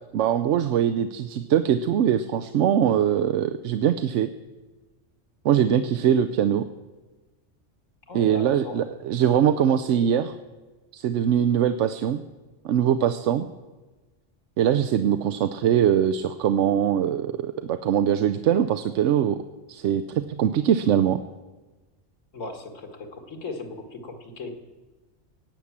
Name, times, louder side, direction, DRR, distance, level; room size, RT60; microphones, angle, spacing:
voice 1, 0.1-4.3 5.4-6.6 8.1-10.3 10.9-12.2 12.6-13.5 14.6-19.4 19.7-21.2, right 9 dB, 75° right, 9 dB, 0.9 m, -22 dB
voice 2, 8.1-8.8 22.3-24.5, left 3 dB, 85° left, 5 dB, 2.1 m, -37 dB
18.0 x 8.3 x 7.3 m, 1.2 s
omnidirectional pair, 1.3 m